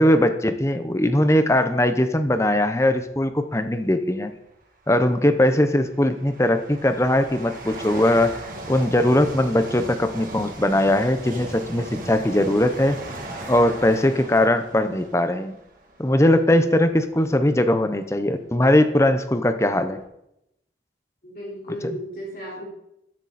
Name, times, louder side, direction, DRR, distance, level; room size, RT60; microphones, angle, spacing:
voice 1, 0.0-4.3 4.9-8.3 8.7-13.0 13.5-15.5 16.0-20.0 21.8-22.0, left 1 dB, 15° left, 9 dB, 0.8 m, -20 dB
sound 1, 2.9-3.2 4.3-4.4 5.2-16.6 17.2-17.4 18.2-18.3 18.5-20.0, right 1 dB, 50° right, 2.6 m, -38 dB
voice 2, 21.2-22.6, equal, 50° left, -5 dB, 4.5 m, -34 dB
13.5 x 11.0 x 4.3 m, 0.80 s
head